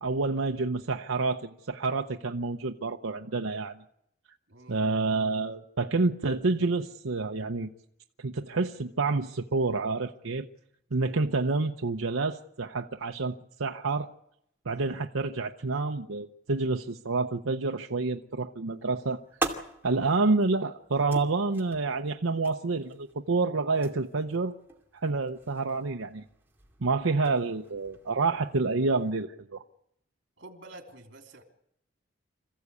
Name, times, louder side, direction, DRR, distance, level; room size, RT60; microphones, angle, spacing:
voice 1, 0.0-3.8 4.7-7.7 8.2-10.5 10.9-14.1 14.6-19.2 19.8-24.5 24.9-26.2 26.8-29.6, right 3 dB, 90° right, 4 dB, 0.9 m, -28 dB
voice 2, 4.5-4.8 30.4-31.4, right 2 dB, 60° right, 4 dB, 3.4 m, -48 dB
sound 1, 18.7-29.1, right 2 dB, 10° right, 2.4 m, -42 dB
26.5 x 15.0 x 8.4 m, 0.78 s
head